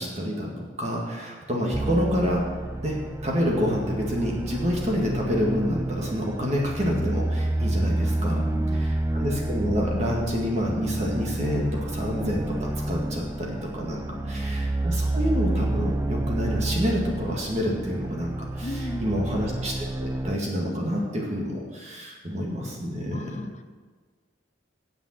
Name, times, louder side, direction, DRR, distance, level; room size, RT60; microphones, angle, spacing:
voice 1, 0.0-2.4 2.8-3.0 3.2-8.4 8.8-23.4, equal, 35° right, -2 dB, 2.1 m, -28 dB
sound 1, 1.7-20.4, right 1 dB, 15° right, 0.3 m, -29 dB
voice 2, 8.2-8.9 13.9-14.4 18.6-19.2 23.1-23.6, left 2 dB, 35° left, 9 dB, 0.6 m, -37 dB
9.3 x 7.5 x 7.6 m, 1.5 s
head